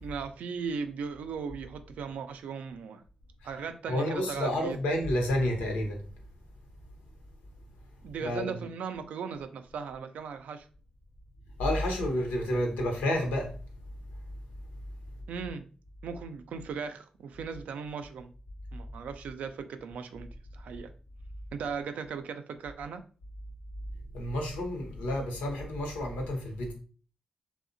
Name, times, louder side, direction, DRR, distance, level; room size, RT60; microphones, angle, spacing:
voice 1, 0.0-3.0 3.4-4.8 8.0-10.7 15.3-15.6 16.0-18.3 18.7-20.9 21.5-23.0, right 6 dB, 75° right, 0.3 m, -38 dB
voice 2, 3.9-6.0 8.2-8.6 11.6-13.6 24.1-26.7, left 1 dB, 90° left, 0.6 m, -30 dB
2.7 x 2.0 x 2.5 m
supercardioid pair, 45°, 3 cm